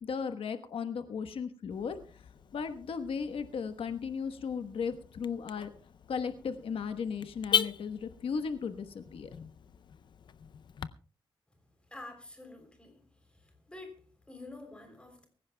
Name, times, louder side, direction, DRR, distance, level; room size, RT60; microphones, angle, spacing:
voice 1, 0.0-2.0 2.5-5.7 6.1-9.3, left 6 dB, 85° left, 9 dB, 1.2 m, -36 dB
Car / Alarm, 1.7-10.9, left 7 dB, 55° left, 0.5 m, -39 dB
voice 2, 11.9-15.3, left 2 dB, 10° left, 4 dB, 3.4 m, -49 dB
23.5 x 15.0 x 2.3 m, 0.38 s
wide cardioid pair, 150°, 9 cm